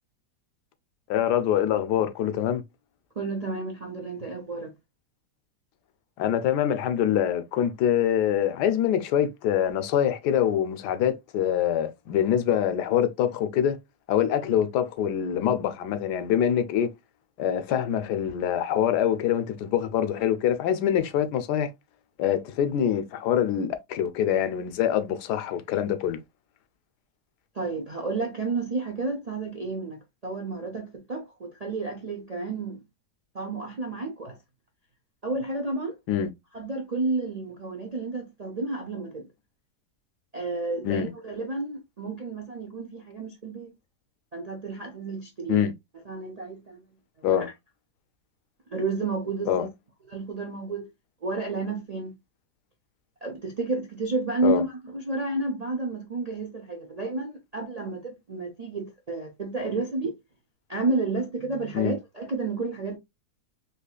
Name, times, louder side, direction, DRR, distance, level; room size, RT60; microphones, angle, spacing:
voice 1, 1.1-2.6 6.2-13.8 14.1-16.9 17.4-21.7 22.2-26.2 36.1-36.3 40.8-41.1 45.5-45.7 47.2-47.5 49.5-49.7 54.4-54.6 61.7-61.9, left 9 dB, 90° left, 1.2 m, -25 dB
voice 2, 3.2-4.7 27.5-32.8 33.3-34.4 35.2-36.0 36.5-39.3 40.3-43.7 44.3-45.6 46.1-46.8 47.2-47.5 48.7-49.7 50.1-50.9 51.2-52.1 53.2-60.2 60.7-63.0, right 3 dB, 45° right, 0.5 m, -31 dB
4.0 x 2.8 x 2.3 m
omnidirectional pair, 1.7 m